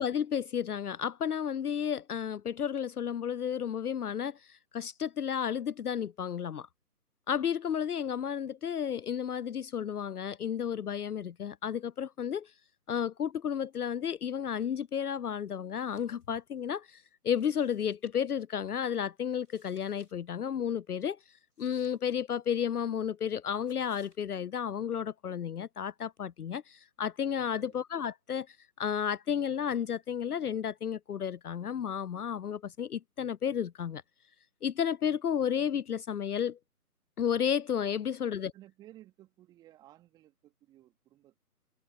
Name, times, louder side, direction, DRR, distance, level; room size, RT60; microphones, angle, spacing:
voice 1, 0.0-6.7 7.3-12.5 12.9-21.2 21.6-34.0 34.6-36.6 37.2-38.5, left 8 dB, 70° left, 0.5 m, -32 dB
sound 1, 15.8-16.3 16.6-16.7 17.4-18.4 19.4-20.1 20.4-20.5 21.5-22.6 23.7-24.3, left 1 dB, 85° left, 6.9 m, -66 dB
voice 2, 38.2-41.4, right 14 dB, 10° right, 2.5 m, -57 dB
figure-of-eight pair, 145°, 47 cm